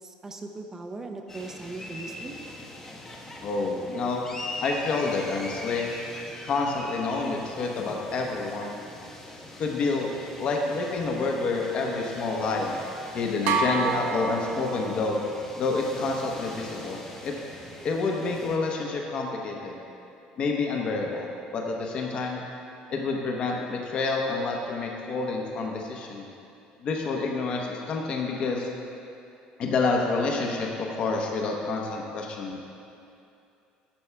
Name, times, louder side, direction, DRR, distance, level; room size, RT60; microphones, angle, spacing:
voice 1, 0.0-2.4, right 3 dB, 15° right, 4 dB, 0.6 m, -39 dB
sound 1, 1.3-18.6, left 1 dB, 15° left, 0.9 m, -42 dB
voice 2, 3.4-4.2 4.6-5.9 6.4-8.8 9.6-10.1 10.4-12.7 13.1-15.2 15.6-17.3 17.8-19.8 20.4-22.4 22.9-26.3 26.8-28.7 29.6-32.6, left 3 dB, 40° left, 0 dB, 1.0 m, -28 dB
sound 2, 13.5-15.2, right 5 dB, 65° right, 0.7 m, -28 dB
11.5 x 6.9 x 3.4 m, 2.7 s
cardioid pair, 155°, 3 cm